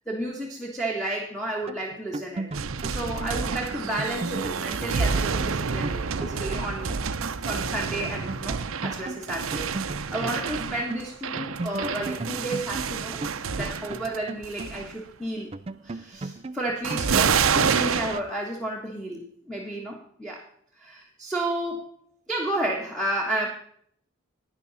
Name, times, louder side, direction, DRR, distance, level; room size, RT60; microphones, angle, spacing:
voice 1, 0.1-2.5 2.8-6.9 7.4-9.7 10.1-15.5 15.8-20.4 20.8-21.9 22.3-23.5, right 1 dB, ahead, -2 dB, 1.5 m, -32 dB
sound 1, 1.6-7.4 7.7-7.8 8.1-11.1 11.4-15.1 15.5-18.3, right 2 dB, 30° right, 0.4 m, -36 dB
sound 2, 2.5-14.2 14.4-14.9 16.8-18.2, right 5 dB, 90° right, 0.7 m, -28 dB
12.0 x 9.9 x 4.1 m, 0.62 s
head